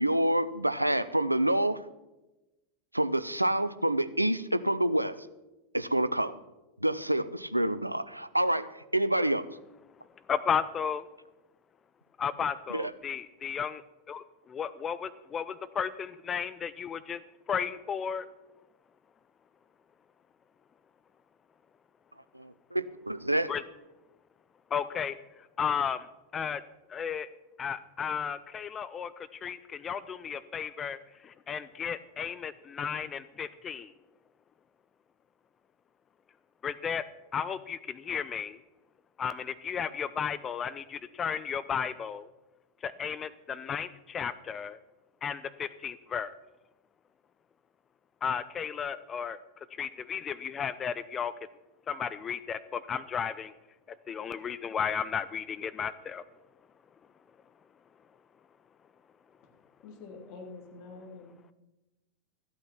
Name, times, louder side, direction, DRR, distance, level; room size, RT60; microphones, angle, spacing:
voice 1, 0.0-1.8 2.9-5.2 5.7-6.3 6.8-9.5 12.7-12.9 22.4-23.5, right 1 dB, 85° right, 14 dB, 0.5 m, -27 dB
voice 2, 10.3-11.1 12.2-13.8 14.1-17.2 17.5-18.3 23.5-23.6 24.7-25.2 25.6-26.1 26.3-26.6 26.9-27.3 27.6-33.9 36.6-37.0 37.3-38.6 39.2-42.3 42.8-44.8 45.2-46.3 48.2-49.4 49.7-51.3 51.9-53.5 54.1-56.2, left 7 dB, 25° left, 15 dB, 0.5 m, -34 dB
voice 3, 59.8-61.4, left 3 dB, 45° left, 1 dB, 3.1 m, -46 dB
13.5 x 8.7 x 6.0 m, 1.0 s
figure-of-eight pair, 90°, 0 cm